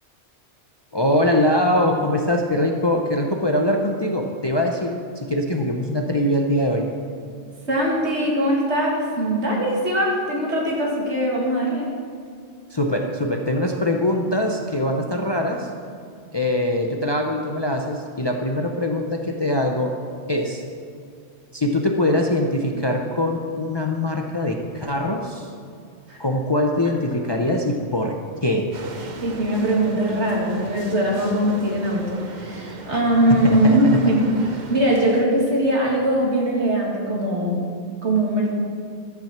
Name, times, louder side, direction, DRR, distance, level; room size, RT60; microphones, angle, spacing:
voice 1, 0.9-6.9 12.7-15.7 16.3-20.0 20.3-20.6 21.5-25.5 26.2-28.7 32.9-33.0 33.3-34.0, left 1 dB, 30° left, 2 dB, 0.6 m, -22 dB
voice 2, 7.7-11.9 26.1-26.2 29.2-34.2 34.7-37.6 38.0-38.5, right 1 dB, 75° right, -3 dB, 2.5 m, -21 dB
sound 1, 28.7-35.3, right 3 dB, 45° right, 0.8 m, -37 dB
13.0 x 6.0 x 7.3 m, 2.2 s
omnidirectional pair, 1.2 m